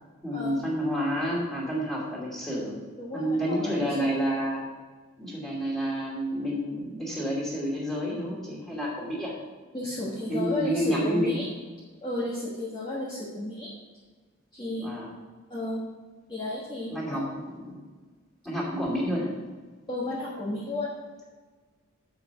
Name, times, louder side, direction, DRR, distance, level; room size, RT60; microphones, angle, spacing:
voice 1, 0.2-2.8 3.1-4.7 5.2-9.3 10.3-11.4 14.8-15.1 16.9-17.8 18.4-19.3, equal, ahead, -5 dB, 2.7 m, -29 dB
voice 2, 3.0-4.1 9.7-11.5 12.0-13.7 14.5-14.9 15.5-15.8 16.3-17.2 19.9-20.9, left 2 dB, 20° left, -8 dB, 1.4 m, -33 dB
7.3 x 6.0 x 5.9 m, 1.4 s
head